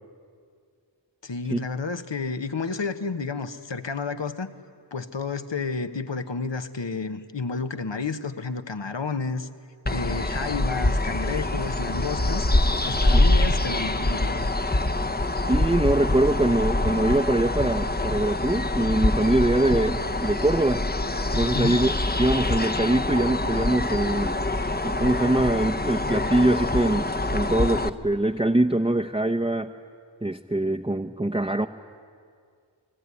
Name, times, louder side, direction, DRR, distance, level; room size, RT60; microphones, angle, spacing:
voice 1, 1.2-4.5 4.9-9.5 9.9-12.5 12.8-14.5 21.5-21.8, left 4 dB, 70° left, 10 dB, 1.4 m, -31 dB
sound 1, 9.9-27.9, left 2 dB, 20° left, 0.9 m, -25 dB
voice 2, 15.5-20.8 21.4-21.9 22.2-24.4 24.8-29.7 30.2-31.7, right 1 dB, 10° right, 4 dB, 0.8 m, -23 dB
29.5 x 20.5 x 9.8 m, 2.2 s
wide cardioid pair, 40°, 46 cm